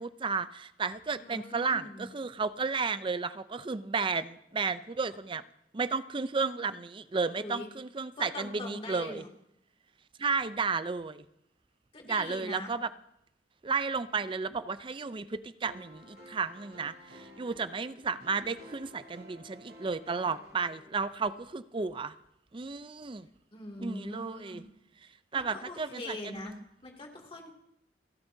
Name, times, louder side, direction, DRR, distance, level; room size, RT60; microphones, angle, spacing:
voice 1, 0.0-5.4 5.7-9.2 10.2-11.2 12.0-12.9 13.6-22.1 22.5-23.3 23.8-24.6 25.3-26.6, right 4 dB, 30° right, 13 dB, 0.5 m, -33 dB
voice 2, 1.2-2.1 7.4-7.7 8.2-9.3 11.9-12.7 23.5-24.7 25.3-26.6 26.8-27.5, left 1 dB, 35° left, 1 dB, 2.4 m, -42 dB
sound 1, 15.6-21.5, equal, 75° right, 4.5 m, -53 dB
29.0 x 12.0 x 2.7 m, 0.77 s
head